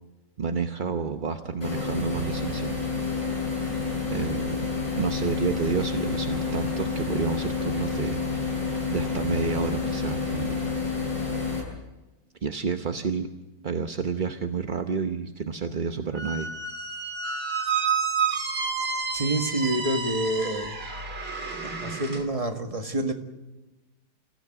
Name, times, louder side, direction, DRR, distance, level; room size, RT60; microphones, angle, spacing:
voice 1, 0.4-2.7 4.1-4.7 5.0-8.6 8.9-10.6 12.4-13.3 13.6-16.5, right 5 dB, 40° right, 6 dB, 0.8 m, -30 dB
sound 1, 1.6-11.6, left 4 dB, 80° left, 8.8 m, -29 dB
Squeak, 16.1-22.2, right 5 dB, 75° right, 3.4 m, -30 dB
voice 2, 19.1-20.8 21.8-23.1, right 1 dB, 20° right, 4 dB, 1.7 m, -27 dB
26.5 x 15.5 x 9.2 m, 1.1 s
omnidirectional pair, 1.9 m